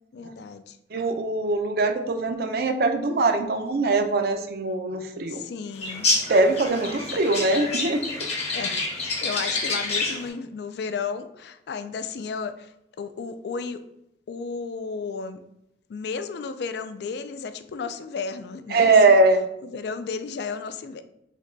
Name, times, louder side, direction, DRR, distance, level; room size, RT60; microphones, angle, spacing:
voice 1, 0.1-0.8 5.3-6.1 8.5-13.8 14.3-15.4 15.9-18.9 19.6-21.0, left 5 dB, 65° left, 10 dB, 0.3 m, -33 dB
voice 2, 0.9-5.4 6.3-8.1 18.7-19.5, right 3 dB, 55° right, 7 dB, 0.4 m, -21 dB
sound 1, 5.8-10.3, left 3 dB, 35° left, 0.9 m, -28 dB
5.0 x 2.2 x 3.9 m, 0.81 s
head